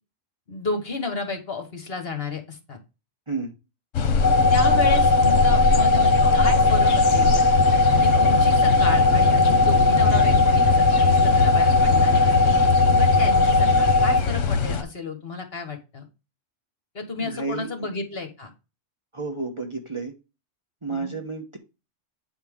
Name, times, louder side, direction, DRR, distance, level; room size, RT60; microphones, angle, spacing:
voice 1, 0.5-2.8 4.5-7.3 7.9-12.5 12.9-16.0 16.9-18.5 20.9-21.1, left 3 dB, 50° left, 1.6 m, -32 dB
sound 1, 3.9-14.8, left 6 dB, 80° left, 1.2 m, -22 dB
sound 2, 4.2-14.2, left 2 dB, 15° left, 1.7 m, -19 dB
sound 3, 6.2-12.7, right 1 dB, 75° right, 2.4 m, -39 dB
voice 2, 17.2-17.9 19.1-20.1 20.8-21.6, right 3 dB, 25° right, 1.0 m, -31 dB
9.1 x 4.4 x 3.6 m
omnidirectional pair, 1.3 m